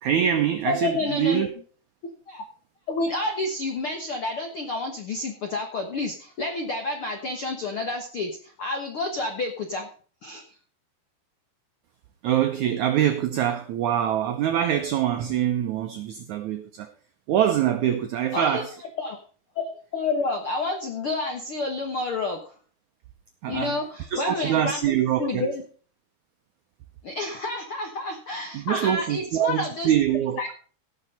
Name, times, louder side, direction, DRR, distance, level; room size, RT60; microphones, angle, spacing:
voice 1, 0.0-1.5 12.2-16.9 17.3-18.8 23.4-23.8 24.1-25.5 28.5-30.4, right 10 dB, 85° right, 6 dB, 1.6 m, -24 dB
voice 2, 0.7-1.5 2.3-2.4 2.9-9.9 10.2-10.4 18.3-18.6 19.0-19.2 19.5-22.5 23.5-24.8 25.2-25.6 27.0-29.9 30.4-30.5, left 3 dB, 70° left, 4 dB, 1.2 m, -29 dB
17.0 x 5.9 x 5.3 m, 0.41 s
omnidirectional pair, 4.5 m